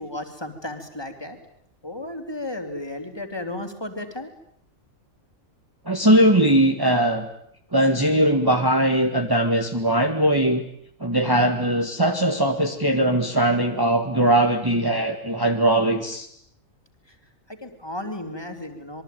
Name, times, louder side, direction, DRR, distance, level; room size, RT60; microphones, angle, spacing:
voice 1, 0.0-1.4 1.8-4.3 17.1-17.2 17.5-19.0, left 1 dB, 20° left, 5 dB, 3.4 m, -34 dB
voice 2, 5.9-7.3 7.7-10.7 11.0-16.3, right 1 dB, 15° right, 4 dB, 1.8 m, -20 dB
26.5 x 23.0 x 9.3 m, 0.67 s
omnidirectional pair, 1.4 m